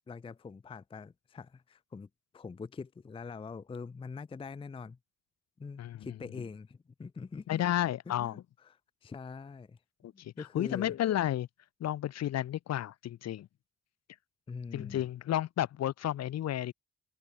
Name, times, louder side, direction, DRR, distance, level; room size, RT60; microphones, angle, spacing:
voice 1, 0.1-2.1 2.3-5.0 5.6-7.6 8.1-8.8 9.0-9.8 10.1-11.0 14.5-15.0, left 5 dB, 20° left, 0.4 m, -44 dB
voice 2, 7.5-8.4 10.0-11.5 11.8-13.5 14.7-16.7, left 12 dB, 60° left, 0.6 m, -32 dB
open air
supercardioid pair, 45°, 29 cm